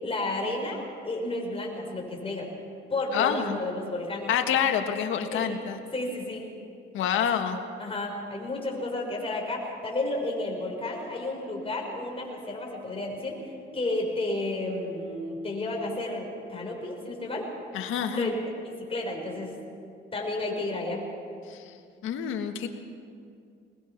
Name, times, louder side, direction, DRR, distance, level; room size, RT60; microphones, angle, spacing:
voice 1, 0.0-2.5 2.9-4.3 5.3-5.5 5.9-6.5 7.3-7.4 7.8-17.5 18.1-18.4 18.9-19.5 20.1-21.0, left 2 dB, 30° left, 0 dB, 5.7 m, -32 dB
voice 2, 3.1-3.6 4.3-5.8 6.9-7.6 17.7-18.3 21.5-21.6 22.0-22.7, left 8 dB, 85° left, 5 dB, 1.7 m, -27 dB
21.5 x 20.5 x 6.0 m, 2.4 s
cardioid pair, 90°, 20 cm